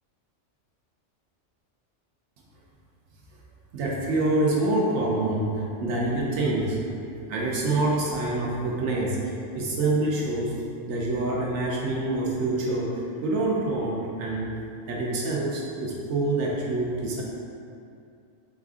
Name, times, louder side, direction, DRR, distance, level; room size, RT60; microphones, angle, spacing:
voice 1, 3.7-6.8 7.3-10.5 10.9-14.5 14.9-17.2, right 2 dB, 75° right, -3 dB, 0.9 m, -26 dB
4.2 x 2.5 x 3.5 m, 2.5 s
omnidirectional pair, 1.3 m